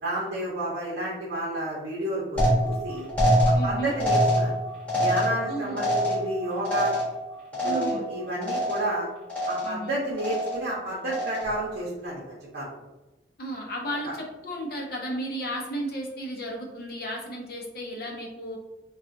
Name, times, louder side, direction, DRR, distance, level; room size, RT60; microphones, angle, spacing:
voice 1, 0.0-3.1 3.6-4.5 5.0-6.9 7.6-9.1 9.5-12.7 14.0-14.1, right 1 dB, 60° right, -6 dB, 0.8 m, -31 dB
sound 1, 2.4-8.1 8.4-9.0 9.3-9.9 10.2-10.7 11.1-11.6, equal, 10° left, 1.0 m, -25 dB
voice 2, 3.5-4.0 5.4-5.9 7.6-8.1 9.6-10.0 13.4-18.6, right 1 dB, 60° left, 0 dB, 0.7 m, -34 dB
3.7 x 2.3 x 2.6 m, 1.1 s
head